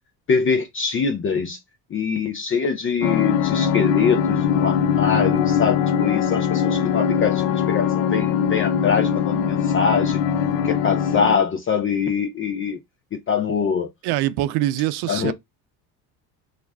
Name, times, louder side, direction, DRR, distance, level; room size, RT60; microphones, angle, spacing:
voice 1, 0.3-1.6 1.9-10.2 10.6-12.8 13.3-13.9 15.1-15.3, left 6 dB, 30° left, 0.5 m, -23 dB
sound 1, 3.0-11.4, left 8 dB, 80° left, 0.5 m, -21 dB
voice 2, 14.0-15.3, right 14 dB, 60° right, 0.5 m, -23 dB
2.4 x 2.1 x 3.4 m
supercardioid pair, 85°, 44 cm